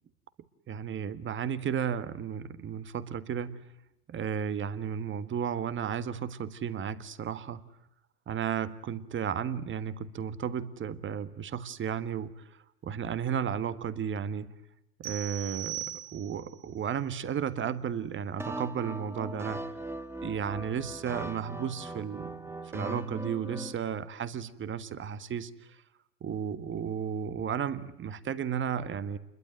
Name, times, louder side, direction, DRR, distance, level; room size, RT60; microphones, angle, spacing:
voice 1, 0.7-3.6 4.1-7.6 8.3-12.4 12.8-14.5 15.0-19.6 20.2-25.5 26.2-29.2, right 8 dB, 25° right, 14 dB, 1.6 m, -33 dB
sound 1, 15.0-16.6, right 13 dB, 65° right, 3.6 m, -39 dB
sound 2, 18.4-23.7, right 2 dB, 5° right, 1.8 m, -39 dB
28.0 x 22.0 x 9.4 m, 0.86 s
hypercardioid pair, 95°, 46 cm